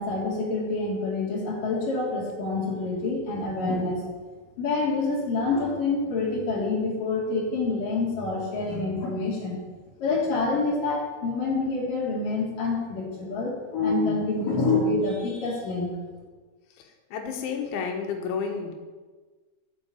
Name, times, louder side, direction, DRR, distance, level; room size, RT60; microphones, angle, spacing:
voice 1, 0.0-4.0 4.6-9.6 10.0-15.9, left 3 dB, 50° left, -3 dB, 4.2 m, -27 dB
voice 2, 17.1-18.7, left 6 dB, 80° left, 3 dB, 3.9 m, -30 dB
10.5 x 8.4 x 8.4 m, 1.3 s
omnidirectional pair, 5.2 m